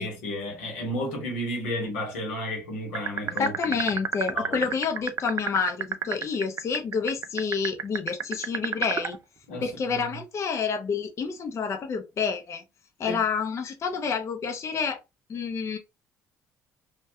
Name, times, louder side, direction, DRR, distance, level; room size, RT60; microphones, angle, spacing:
voice 1, 0.0-3.5 4.3-4.7 9.5-10.1 13.1-13.2, left 1 dB, 85° left, 0.9 m, -32 dB
sound 1, 3.0-9.2, right 7 dB, 45° right, 0.3 m, -28 dB
voice 2, 3.4-9.2 9.6-12.6 13.0-15.0 15.3-15.8, left 5 dB, 40° left, 0.5 m, -29 dB
2.2 x 2.1 x 2.7 m
hypercardioid pair, 60°, 7 cm